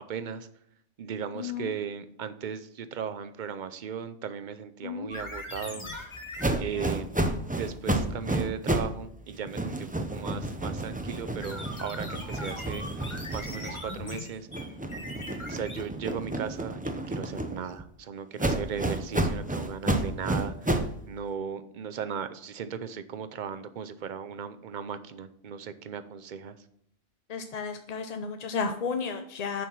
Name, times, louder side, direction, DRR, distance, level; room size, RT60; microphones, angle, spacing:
voice 1, 0.1-0.5 1.0-5.9 6.6-7.1 7.6-14.5 15.5-26.6, right 7 dB, 50° right, 12 dB, 0.6 m, -37 dB
voice 2, 1.3-1.7 4.8-5.1 6.7-6.9 27.3-29.7, left 5 dB, 50° left, 7 dB, 0.5 m, -33 dB
sound 1, 5.1-6.6 11.4-16.1, left 2 dB, 25° left, 1.3 m, -40 dB
sound 2, 6.4-9.0 9.3-14.1 14.5-17.8 18.4-21.0, right 1 dB, 10° right, 0.4 m, -31 dB
7.0 x 5.6 x 6.1 m, 0.71 s
omnidirectional pair, 1.2 m